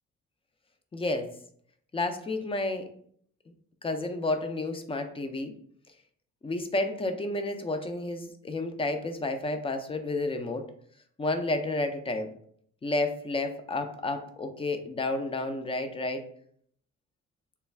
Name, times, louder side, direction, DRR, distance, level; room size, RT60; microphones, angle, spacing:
voice 1, 0.9-1.3 1.9-2.9 3.8-5.5 6.4-10.6 11.2-12.3 12.8-16.2, left 2 dB, 20° left, 7 dB, 0.4 m, -31 dB
3.3 x 2.2 x 3.2 m, 0.62 s
cardioid pair, 90°, 30 cm